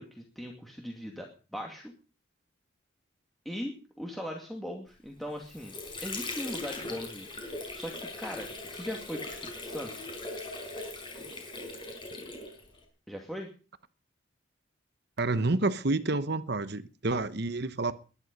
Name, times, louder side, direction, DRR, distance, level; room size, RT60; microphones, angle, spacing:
voice 1, 0.0-1.9 3.4-5.7 6.0-9.9 13.1-13.5, equal, ahead, 2.4 m, -39 dB
Water / Sink (filling or washing), 5.2-12.8, left 2 dB, 25° left, 5.0 m, -40 dB
voice 2, 15.2-17.9, right 2 dB, 55° right, 1.1 m, -29 dB
21.0 x 11.0 x 5.4 m
head